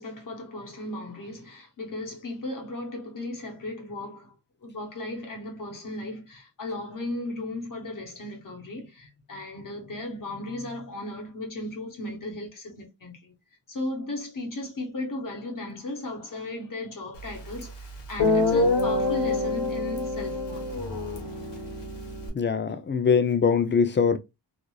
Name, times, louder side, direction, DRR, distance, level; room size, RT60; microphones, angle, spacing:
voice 1, 0.0-4.3 4.6-13.3 13.7-20.7, left 2 dB, 50° left, 0.9 m, -36 dB
Guitar, 17.6-17.7 18.2-22.3, left 3 dB, 70° left, 1.1 m, -26 dB
voice 2, 22.3-24.2, left 6 dB, 30° left, 0.3 m, -22 dB
3.0 x 2.4 x 2.3 m
wide cardioid pair, 110°, 42 cm